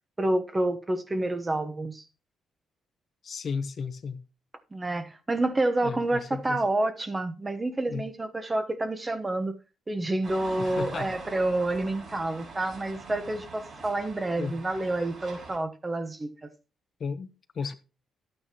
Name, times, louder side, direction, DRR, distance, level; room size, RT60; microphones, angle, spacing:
voice 1, 0.2-2.0 4.7-9.5 9.9-16.5 17.6-17.7, right 2 dB, 20° right, 1.1 m, -28 dB
voice 2, 3.2-4.2 5.8-6.6 7.9-8.1 10.6-11.1 14.4-14.5 17.0-17.7, left 5 dB, 50° left, 0.9 m, -34 dB
sound 1, 10.2-15.6, right 3 dB, 50° right, 5.7 m, -44 dB
12.0 x 8.8 x 3.0 m
cardioid pair, 90°, 0 cm